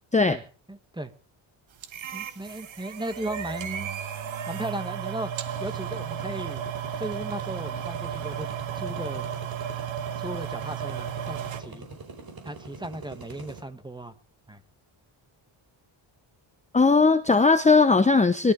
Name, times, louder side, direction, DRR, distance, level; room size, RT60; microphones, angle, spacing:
voice 1, 0.7-1.1 2.1-3.9 4.5-5.3 5.6-6.6 7.0-8.5 8.7-9.3 10.2-11.9 12.4-14.2 14.5-14.6, right 1 dB, 10° right, 10 dB, 1.6 m, -36 dB
sound 1, 1.8-11.6, right 9 dB, 70° right, 2.2 m, -34 dB
sound 2, 5.5-13.6, right 2 dB, 45° right, 4.6 m, -43 dB
voice 2, 16.7-18.5, left 4 dB, 15° left, 10 dB, 0.9 m, -18 dB
21.5 x 13.0 x 5.2 m, 0.38 s
cardioid pair, 120°, 48 cm